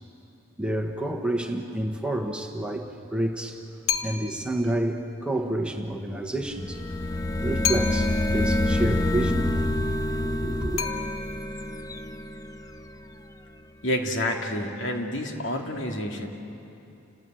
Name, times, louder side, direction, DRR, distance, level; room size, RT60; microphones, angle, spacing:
voice 1, 0.6-3.6 4.0-6.8 7.4-9.6 10.3-10.8, right 1 dB, 5° right, 3 dB, 1.2 m, -29 dB
sound 1, 3.9-4.5 7.6-8.3 10.8-11.6, left 8 dB, 80° left, 1.7 m, -30 dB
sound 2, 6.5-13.2, left 1 dB, 15° left, 0.7 m, -27 dB
voice 2, 13.8-16.3, left 1 dB, 65° left, 1 dB, 2.5 m, -28 dB
30.0 x 19.0 x 9.1 m, 2.8 s
head